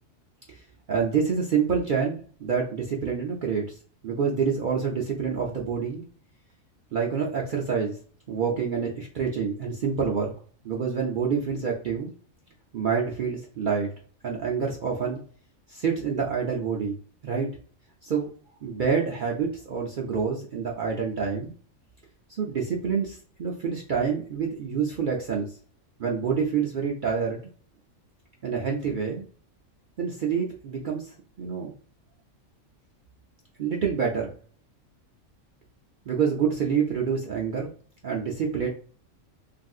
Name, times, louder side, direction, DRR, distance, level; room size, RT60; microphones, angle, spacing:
voice 1, 0.9-3.8 4.0-6.0 6.9-8.0 8.3-10.3 10.6-12.1 12.7-13.9 14.2-15.2 15.7-17.0 17.2-17.5 18.0-18.3 18.6-21.5 22.4-25.5 26.0-27.5 28.4-29.3 30.0-31.7 33.6-34.3 36.1-37.7 38.0-38.7, right 6 dB, 65° right, -1 dB, 0.4 m, -27 dB
3.2 x 2.6 x 2.3 m, 0.44 s
omnidirectional pair, 1.3 m